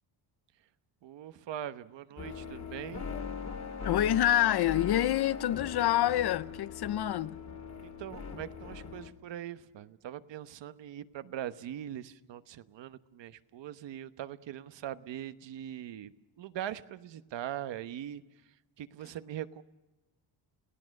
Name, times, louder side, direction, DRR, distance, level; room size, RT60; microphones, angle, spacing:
voice 1, 1.0-3.0 7.8-19.6, right 11 dB, 65° right, 1.1 m, -42 dB
sound 1, 2.2-9.1, left 5 dB, 35° left, 2.5 m, -40 dB
voice 2, 3.8-7.4, left 13 dB, 55° left, 0.7 m, -27 dB
30.0 x 17.0 x 6.5 m
cardioid pair, 120°, 47 cm